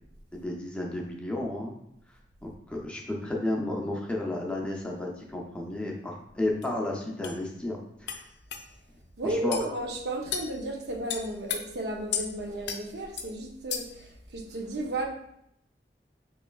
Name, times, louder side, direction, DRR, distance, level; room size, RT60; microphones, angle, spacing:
voice 1, 0.3-1.7 2.4-8.3 9.2-9.6, left 1 dB, 5° left, -1 dB, 0.5 m, -32 dB
sound 1, 6.6-6.7 7.2-7.4 8.1-8.2 8.5-8.6 9.5-9.7 10.3-10.5 11.1-11.6 12.1-12.3 12.7-12.8 13.2-13.3 13.7-14.0, left 7 dB, 80° left, 0.5 m, -33 dB
voice 2, 9.2-15.1, right 1 dB, 65° right, 2 dB, 0.6 m, -33 dB
5.1 x 3.1 x 2.3 m, 0.75 s
head